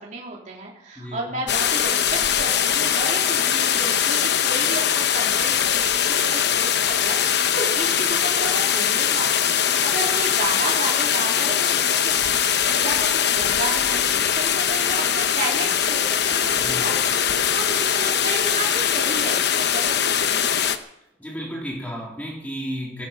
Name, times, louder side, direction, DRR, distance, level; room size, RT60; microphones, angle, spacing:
voice 1, 0.0-20.6, right 2 dB, 40° right, -4 dB, 3.6 m, -32 dB
voice 2, 1.0-1.4 16.6-17.1 21.2-23.1, equal, 10° left, -3 dB, 3.5 m, -33 dB
sound 1, 1.5-20.8, left 8 dB, 60° left, 1.0 m, -21 dB
17.5 x 13.0 x 5.9 m, 0.83 s
head